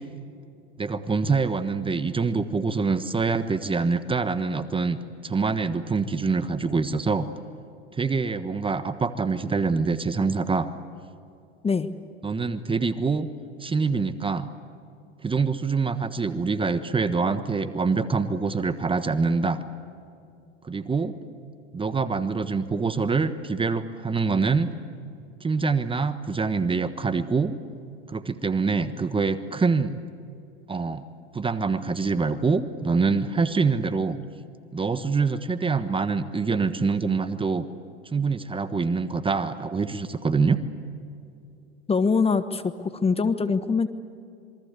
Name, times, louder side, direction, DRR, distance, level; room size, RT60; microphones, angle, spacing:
voice 1, 0.8-7.3 7.9-10.7 12.2-13.3 13.6-14.5 15.2-19.6 20.6-21.1 21.7-24.7 25.4-27.5 28.1-30.0 30.7-31.0 31.3-34.2 34.7-37.7 38.1-40.6, right 4 dB, 15° right, 12 dB, 1.3 m, -25 dB
voice 2, 41.9-43.9, left 5 dB, 15° left, 11 dB, 1.3 m, -23 dB
27.0 x 23.5 x 8.3 m, 2.6 s
hypercardioid pair, 95°, 34 cm